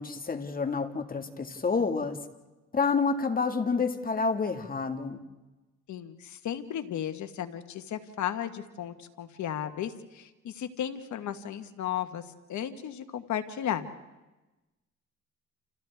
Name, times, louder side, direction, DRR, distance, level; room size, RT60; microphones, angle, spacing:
voice 1, 0.0-2.2 2.7-5.2, left 4 dB, 30° left, 6 dB, 1.9 m, -28 dB
voice 2, 5.9-12.2 12.5-13.9, left 10 dB, 70° left, 8 dB, 1.5 m, -34 dB
29.0 x 29.0 x 3.5 m, 1.1 s
cardioid pair, 90°, 30 cm